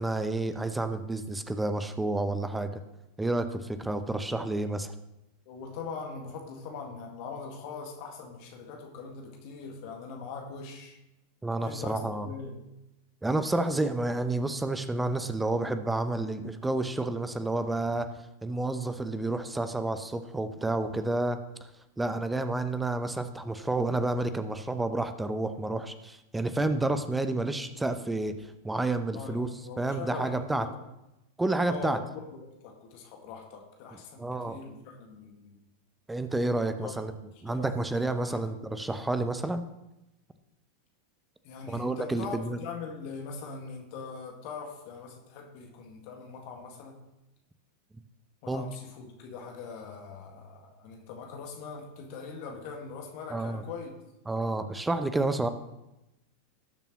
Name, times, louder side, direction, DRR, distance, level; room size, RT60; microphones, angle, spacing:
voice 1, 0.0-2.8 3.2-4.9 11.4-12.3 13.2-18.1 18.4-21.4 22.0-29.5 29.8-30.7 31.4-32.0 34.2-34.6 36.1-37.1 37.4-39.6 41.7-42.6 48.5-48.6 53.3-53.6 54.3-55.5, right 2 dB, 5° right, 10 dB, 0.8 m, -30 dB
voice 2, 5.5-11.0 11.6-12.6 29.1-30.7 31.7-35.6 36.6-36.9 37.4-37.7 38.0-38.5 41.4-47.0 48.4-54.0, left 5 dB, 45° left, 2 dB, 1.8 m, -42 dB
18.5 x 7.0 x 3.1 m, 0.92 s
figure-of-eight pair, 90°, 0 cm